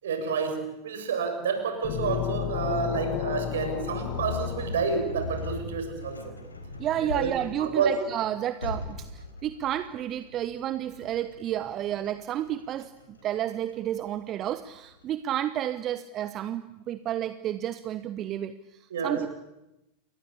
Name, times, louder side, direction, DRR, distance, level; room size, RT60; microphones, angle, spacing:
voice 1, 0.0-6.3 7.1-7.3 7.6-8.0 18.9-19.2, right 5 dB, 60° right, 6 dB, 7.3 m, -29 dB
sound 1, 1.8-5.6, left 14 dB, 45° left, 1.4 m, -33 dB
sound 2, 3.9-15.0, left 3 dB, 80° left, 4.5 m, -40 dB
voice 2, 6.8-19.3, right 11 dB, 30° right, 13 dB, 1.0 m, -31 dB
29.0 x 22.5 x 8.6 m, 0.93 s
figure-of-eight pair, 90°, 0 cm